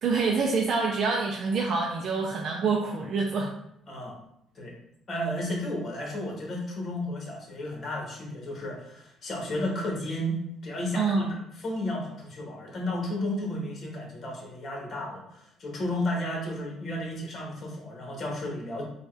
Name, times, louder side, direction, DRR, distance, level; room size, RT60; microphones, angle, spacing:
voice 1, 0.0-3.5 10.9-11.3, right 4 dB, 55° right, 0 dB, 0.5 m, -26 dB
voice 2, 5.1-18.8, left 1 dB, 45° left, -1 dB, 1.3 m, -33 dB
4.4 x 2.3 x 3.3 m, 0.76 s
cardioid pair, 90°, 0 cm